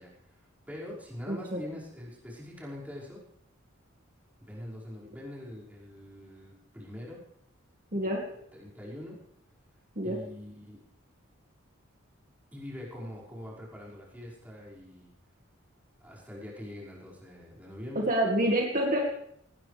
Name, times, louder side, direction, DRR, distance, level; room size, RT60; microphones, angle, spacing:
voice 1, 0.0-3.2 4.4-7.2 8.3-9.2 10.0-10.8 12.5-15.1 16.0-18.0, left 1 dB, 10° right, -6 dB, 5.7 m, -43 dB
voice 2, 1.3-1.6 7.9-8.2 10.0-10.2 18.1-19.0, right 1 dB, 40° right, -1 dB, 2.1 m, -27 dB
19.0 x 18.5 x 3.5 m, 0.73 s
head